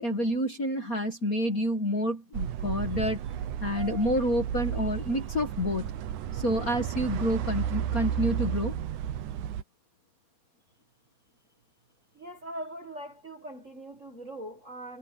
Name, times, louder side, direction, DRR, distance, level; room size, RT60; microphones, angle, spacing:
voice 1, 0.0-3.2 3.6-5.9 6.3-8.8, equal, 35° left, 1.9 m, -28 dB
sound 1, 2.3-9.6, right 10 dB, 85° right, 2.6 m, -33 dB
voice 2, 12.1-15.0, right 1 dB, 30° right, 1.8 m, -41 dB
omnidirectional pair, 3.4 m